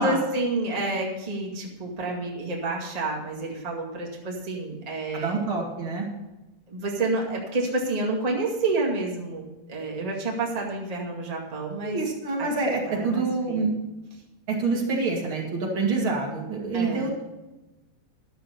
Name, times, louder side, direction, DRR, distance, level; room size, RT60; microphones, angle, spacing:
voice 1, 0.0-5.5 6.7-12.0 12.4-12.5 12.9-13.7 16.7-17.1, right 2 dB, 60° right, -2 dB, 0.4 m, -29 dB
voice 2, 5.1-6.1 11.8-13.7 14.5-17.2, right 3 dB, 40° right, -2 dB, 2.3 m, -26 dB
12.0 x 7.0 x 6.8 m, 1.0 s
omnidirectional pair, 4.6 m